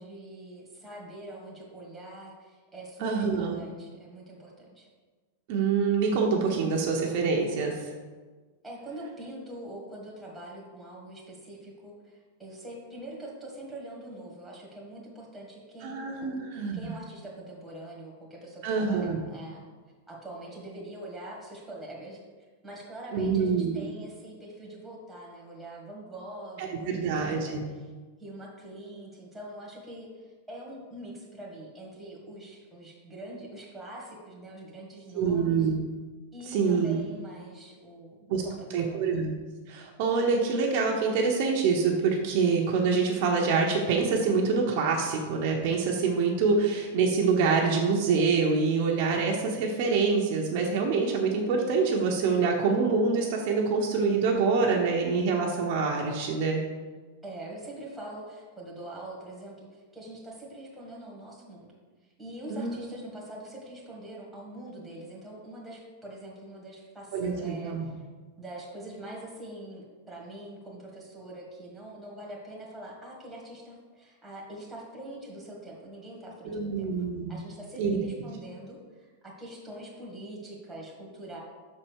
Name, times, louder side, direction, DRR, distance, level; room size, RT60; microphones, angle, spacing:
voice 1, 0.0-4.9 8.6-16.4 16.7-19.6 20.1-22.2 22.6-27.9 28.2-35.7 36.3-39.1 57.2-61.7 62.2-68.0 68.4-76.9 77.3-81.4, right 1 dB, ahead, -4 dB, 1.8 m, -44 dB
voice 2, 3.0-3.6 5.5-7.9 15.8-16.9 18.6-19.2 23.1-23.9 26.6-27.6 35.1-35.8 36.5-37.0 38.3-38.5 38.7-39.3 39.7-56.6 62.5-62.8 67.1-67.9 76.4-77.3 77.8-78.0, right 5 dB, 45° right, 0 dB, 1.0 m, -26 dB
6.1 x 4.4 x 6.3 m, 1.4 s
supercardioid pair, 160°, 0 cm